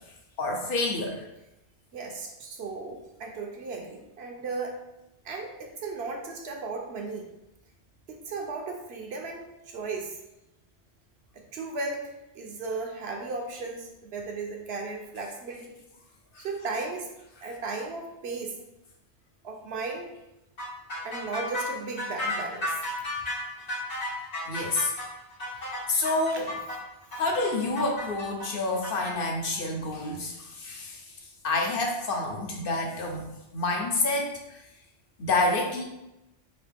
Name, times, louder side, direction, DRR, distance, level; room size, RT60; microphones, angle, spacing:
voice 1, 0.4-1.2 24.5-24.9 25.9-26.5 27.2-31.1 31.4-34.6 35.2-35.8, left 2 dB, 60° left, 1 dB, 0.8 m, -28 dB
voice 2, 1.9-4.8 5.2-7.3 8.1-10.2 11.3-15.7 16.4-17.1 17.4-18.6 19.4-20.1 21.0-22.8 26.3-26.6, right 3 dB, 70° right, 1 dB, 0.9 m, -36 dB
sound 1, 20.6-29.1, left 1 dB, 80° left, 1.9 m, -34 dB
4.0 x 2.8 x 3.4 m, 0.91 s
omnidirectional pair, 1.1 m